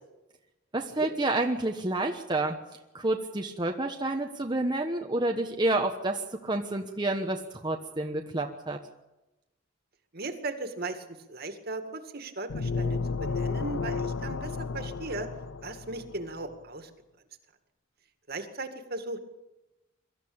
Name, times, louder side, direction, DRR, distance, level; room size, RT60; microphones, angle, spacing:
voice 1, 0.7-2.6 2.9-8.8, right 2 dB, 20° right, 2 dB, 1.2 m, -29 dB
voice 2, 10.1-15.3 15.6-16.9 18.3-19.2, right 2 dB, 50° right, 7 dB, 2.2 m, -37 dB
sound 1, 12.5-16.2, left 4 dB, 85° left, 0.7 m, -32 dB
23.5 x 13.5 x 8.7 m, 1.0 s
head